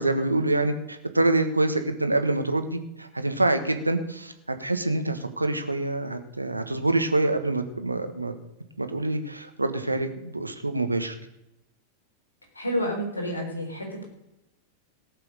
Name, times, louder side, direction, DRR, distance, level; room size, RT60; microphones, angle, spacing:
voice 1, 0.0-4.3 4.6-8.3 8.8-11.2, right 2 dB, 85° right, 8 dB, 1.4 m, -26 dB
voice 2, 12.5-14.0, equal, 80° left, 2 dB, 3.8 m, -29 dB
18.5 x 6.7 x 6.6 m, 0.90 s
figure-of-eight pair, 90°, 0 cm